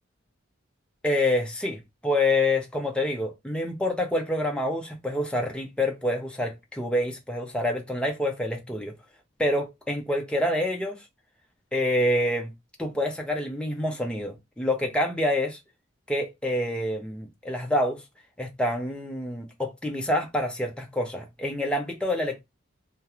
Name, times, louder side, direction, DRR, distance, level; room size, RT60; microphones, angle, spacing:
voice 1, 1.0-8.9 9.4-11.0 11.7-12.5 12.8-15.6 16.1-18.0 18.4-22.4, left 1 dB, 5° left, 0.5 m, -27 dB
2.4 x 2.2 x 2.8 m
head